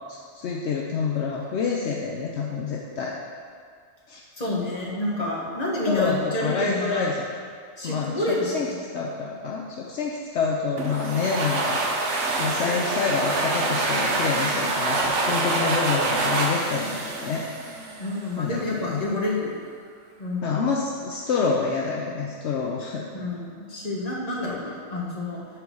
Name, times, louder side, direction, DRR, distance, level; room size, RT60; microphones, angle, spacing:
voice 1, 0.1-3.2 4.1-4.2 5.9-7.3 7.8-8.7 8.9-17.4 18.4-19.0 20.4-23.1, left 5 dB, 70° left, -2 dB, 1.0 m, -27 dB
voice 2, 4.4-7.1 7.8-8.5 18.0-19.5 20.2-20.5 23.1-25.4, left 2 dB, 35° left, -3 dB, 1.5 m, -28 dB
sound 1, 10.8-18.3, right 2 dB, 80° right, 1.3 m, -26 dB
8.8 x 4.6 x 6.2 m, 2.1 s
omnidirectional pair, 1.2 m